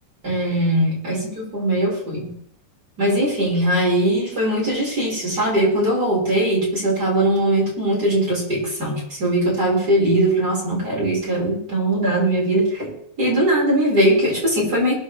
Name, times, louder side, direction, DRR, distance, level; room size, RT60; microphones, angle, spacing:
voice 1, 0.2-2.4 3.0-14.9, right 1 dB, 25° right, -4 dB, 5.9 m, -20 dB
22.5 x 10.5 x 3.5 m, 0.66 s
omnidirectional pair, 3.8 m